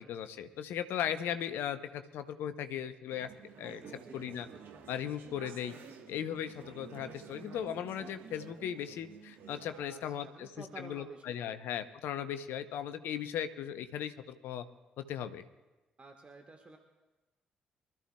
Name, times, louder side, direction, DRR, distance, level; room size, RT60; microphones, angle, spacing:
voice 1, 0.0-3.3 3.6-3.8 4.1-4.5 4.9-5.8 6.1-10.5 10.8-14.6 15.0-15.4, left 9 dB, 60° left, 11 dB, 0.8 m, -37 dB
Conversation / Chatter, 3.1-9.8, right 6 dB, 60° right, 1.4 m, -51 dB
voice 2, 3.8-4.3 9.7-11.6 16.0-16.8, right 3 dB, 30° right, 3 dB, 1.5 m, -51 dB
24.5 x 13.5 x 2.3 m, 1.1 s
figure-of-eight pair, 40°, 4 cm